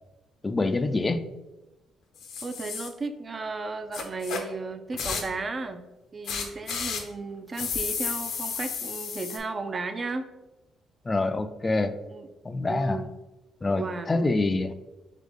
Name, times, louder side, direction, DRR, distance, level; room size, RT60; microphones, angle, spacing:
voice 1, 0.4-1.3 11.1-11.9 12.4-13.0 13.6-14.7, left 2 dB, 25° left, 10 dB, 0.3 m, -26 dB
sound 1, 2.2-2.9 3.9-4.4 4.9-5.4 6.2-7.0 7.5-9.4, left 6 dB, 75° left, 0.6 m, -32 dB
voice 2, 2.4-5.8 6.1-10.3 12.1-12.3 12.6-13.2 13.8-14.3, right 3 dB, 35° right, 8 dB, 0.4 m, -34 dB
3.7 x 3.5 x 3.5 m, 1.0 s
cardioid pair, 90°, 0 cm